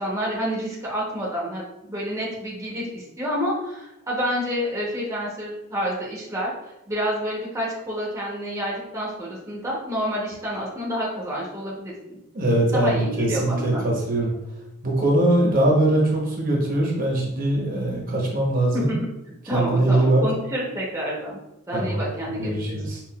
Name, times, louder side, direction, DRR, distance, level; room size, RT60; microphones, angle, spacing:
voice 1, 0.0-11.9 12.7-13.8 18.7-19.0 19.4-21.4 21.7-22.8, equal, 15° right, -5 dB, 0.7 m, -28 dB
voice 2, 12.3-14.3 14.8-18.9 19.5-20.2 21.7-22.0 22.3-23.0, right 1 dB, 45° right, -2 dB, 0.8 m, -21 dB
5.6 x 2.4 x 2.2 m, 0.90 s
head